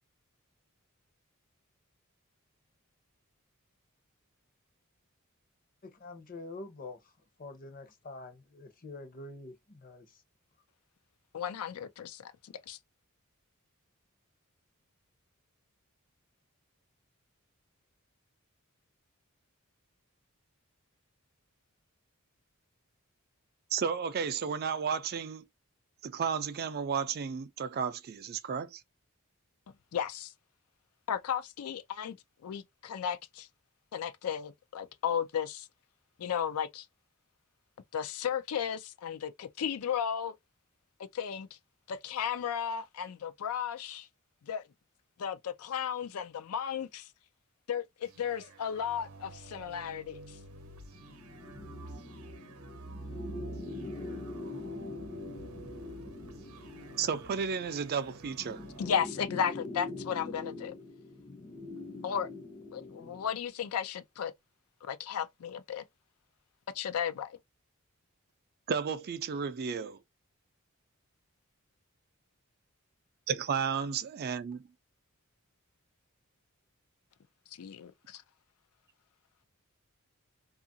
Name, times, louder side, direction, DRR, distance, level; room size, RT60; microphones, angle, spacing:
voice 1, 5.8-7.0 7.4-10.2, left 2 dB, 40° left, 0.7 m, -46 dB
voice 2, 11.3-12.8 29.9-30.3 31.1-32.2 32.4-33.5 33.9-35.7 36.2-36.9 37.9-40.3 41.1-41.5 41.9-44.1 44.5-44.6 45.2-47.1 47.7-50.4 58.8-60.7 62.0-62.3 62.7-64.3 64.8-65.8 66.7-67.4 77.5-78.2, left 8 dB, 85° left, 0.4 m, -34 dB
voice 3, 23.7-25.5 26.0-28.8 57.0-58.6 68.7-70.0 73.3-74.7, right 6 dB, 45° right, 0.4 m, -33 dB
sound 1, 48.0-59.0, right 3 dB, 85° right, 0.7 m, -49 dB
sound 2, 50.9-63.3, left 2 dB, 20° left, 0.4 m, -44 dB
2.8 x 2.4 x 2.6 m
head